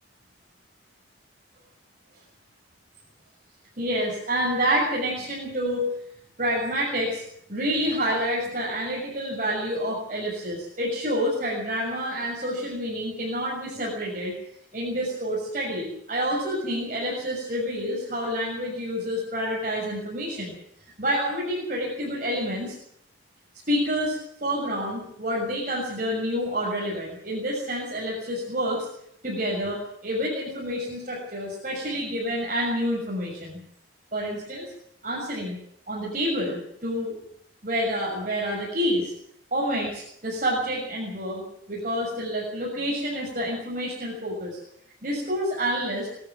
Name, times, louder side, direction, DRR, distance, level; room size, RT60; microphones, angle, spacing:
voice 1, 3.8-5.9 6.4-7.2 7.5-14.3 14.7-20.6 21.0-22.8 23.7-28.9 29.2-33.6 34.1-34.7 35.0-35.6 35.9-37.1 37.6-39.1 39.5-44.6 45.0-46.1, equal, 45° right, -4 dB, 6.7 m, -28 dB
23.5 x 12.5 x 9.3 m, 0.72 s
head